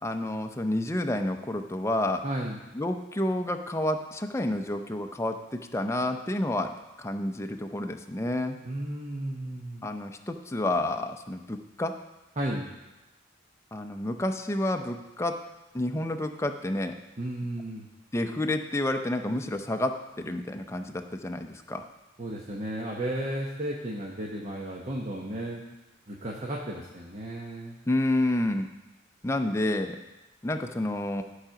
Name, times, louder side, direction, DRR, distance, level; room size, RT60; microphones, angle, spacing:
voice 1, 0.0-2.2 2.7-8.6 9.8-11.9 13.7-15.4 15.7-16.9 18.1-21.9 27.9-28.7 29.2-30.0 30.4-31.2, left 1 dB, 15° left, 5 dB, 0.5 m, -29 dB
voice 2, 2.2-2.6 8.6-9.8 12.4-12.7 17.2-17.9 22.2-25.6 26.1-27.8, right 1 dB, 35° right, -2 dB, 0.9 m, -34 dB
12.0 x 4.9 x 5.8 m, 1.0 s
head